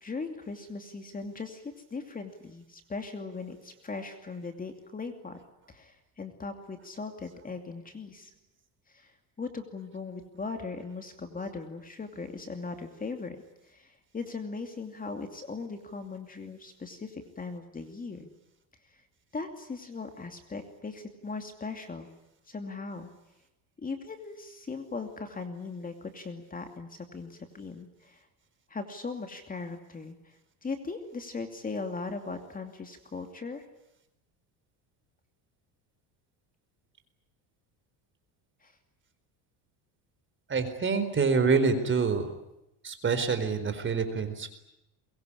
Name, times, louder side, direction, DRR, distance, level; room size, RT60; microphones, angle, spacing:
voice 1, 0.0-5.4 5.7-8.3 8.9-13.4 13.6-18.3 18.8-19.0 19.3-22.1 22.5-23.1 23.8-28.3 28.7-33.6 38.6-38.8, left 4 dB, 20° left, 6 dB, 2.7 m, -39 dB
voice 2, 40.5-42.3 42.8-44.5, right 5 dB, 25° right, 9 dB, 4.3 m, -26 dB
23.0 x 22.5 x 9.9 m, 0.87 s
cardioid pair, 130°, 42 cm